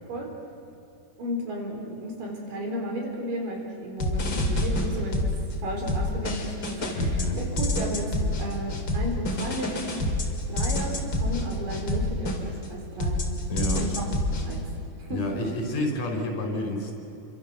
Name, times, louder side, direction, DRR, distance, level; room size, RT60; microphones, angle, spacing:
voice 1, 1.2-5.3 5.6-7.0 7.4-10.1 10.5-13.2 13.8-14.1 14.4-14.7 15.0-15.3, equal, 85° right, 1 dB, 5.7 m, -34 dB
sound 1, 4.0-5.5 5.9-12.7 13.0-14.5, left 1 dB, 35° left, 3.1 m, -27 dB
voice 2, 6.9-7.4 13.5-13.8 15.1-16.9, left 1 dB, 60° left, 2 dB, 5.5 m, -29 dB
28.0 x 25.0 x 6.7 m, 2.9 s
omnidirectional pair, 3.8 m